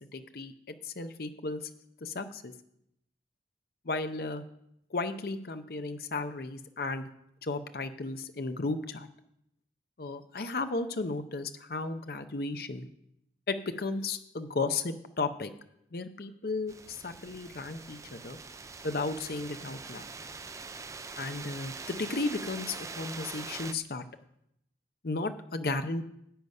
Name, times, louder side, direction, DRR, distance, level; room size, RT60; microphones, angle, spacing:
voice 1, 0.1-0.5 0.8-1.6 2.0-2.5 3.9-4.4 4.9-7.1 7.4-9.1 10.0-12.9 13.5-15.5 15.9-18.4 18.8-20.0 21.2-24.0 25.0-26.0, left 3 dB, 55° left, 9 dB, 0.7 m, -34 dB
sound 1, 16.7-23.7, right 4 dB, 15° right, 0.3 m, -43 dB
10.5 x 8.0 x 5.4 m, 0.78 s
head